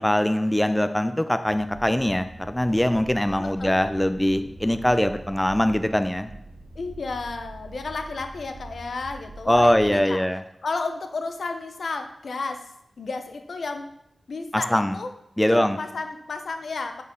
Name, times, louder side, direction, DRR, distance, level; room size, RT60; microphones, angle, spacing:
voice 1, 0.0-6.3 9.5-10.4 14.5-15.0 15.4-15.8, left 1 dB, 10° left, 9 dB, 0.4 m, -22 dB
sound 1, 1.4-10.0, right 2 dB, 55° right, 1.8 m, -43 dB
voice 2, 3.4-3.7 6.7-10.2 10.6-12.7 13.0-13.9 14.3-15.1 15.5-17.0, left 3 dB, 75° left, 6 dB, 0.7 m, -32 dB
9.3 x 4.0 x 3.7 m, 0.79 s
wide cardioid pair, 80°, 0 cm